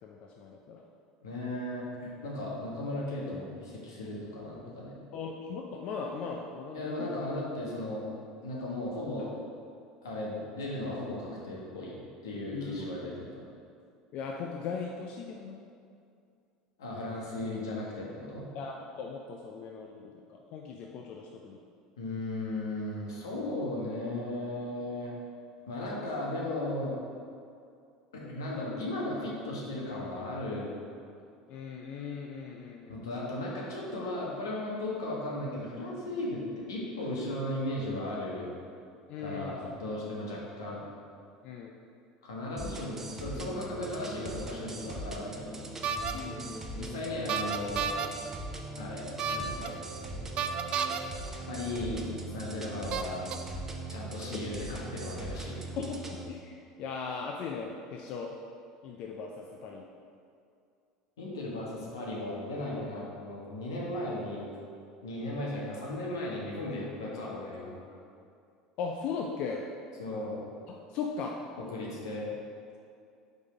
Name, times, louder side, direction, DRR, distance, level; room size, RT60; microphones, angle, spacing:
voice 1, 0.0-0.8 5.1-7.2 12.5-12.9 14.1-15.7 18.5-21.6 31.5-33.0 39.1-39.6 41.4-41.8 46.1-46.7 55.8-58.4 58.8-59.9 61.6-61.7 68.8-69.6 70.7-71.5, left 5 dB, 55° left, 1 dB, 0.5 m, -38 dB
voice 2, 1.2-4.9 6.7-8.0 8.4-9.3 10.0-12.0 12.2-13.4 16.8-18.5 22.0-25.1 25.7-26.9 28.1-30.7 32.9-36.4 36.7-38.5 39.2-40.8 42.2-45.7 46.7-47.9 48.8-49.0 49.3-49.8 51.5-53.2 53.9-55.6 61.2-64.5 65.0-67.8 70.0-70.4 71.6-72.3, left 1 dB, 85° left, -4 dB, 1.4 m, -36 dB
sound 1, 42.6-56.3, right 2 dB, 20° right, 0.7 m, -40 dB
sound 2, 45.8-46.1 47.3-48.1 49.2-49.7 50.4-51.0 52.1-52.2 52.9-53.3, right 7 dB, 50° right, 0.4 m, -31 dB
5.2 x 4.0 x 5.0 m, 2.4 s
hypercardioid pair, 85°, 2 cm